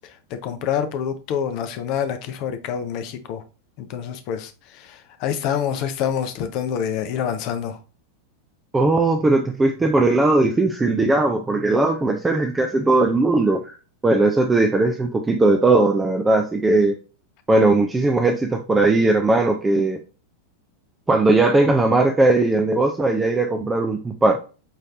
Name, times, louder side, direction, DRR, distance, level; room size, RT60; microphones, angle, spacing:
voice 1, 0.4-3.4 3.8-4.5 4.8-7.8, left 8 dB, 40° left, 0.6 m, -26 dB
voice 2, 8.7-13.7 14.0-17.0 17.5-20.0 21.1-24.4, right 2 dB, 10° right, 0.5 m, -18 dB
5.5 x 3.2 x 2.5 m
figure-of-eight pair, 90°, 0 cm